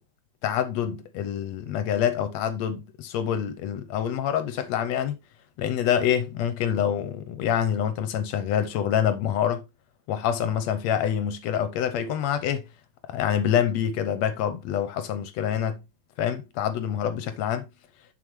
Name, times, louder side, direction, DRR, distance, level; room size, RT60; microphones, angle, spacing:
voice 1, 0.4-5.2 5.6-9.6 10.1-12.6 13.1-15.8 16.2-17.7, left 9 dB, 75° left, 1.8 m, -26 dB
7.6 x 6.4 x 3.1 m
omnidirectional pair, 3.3 m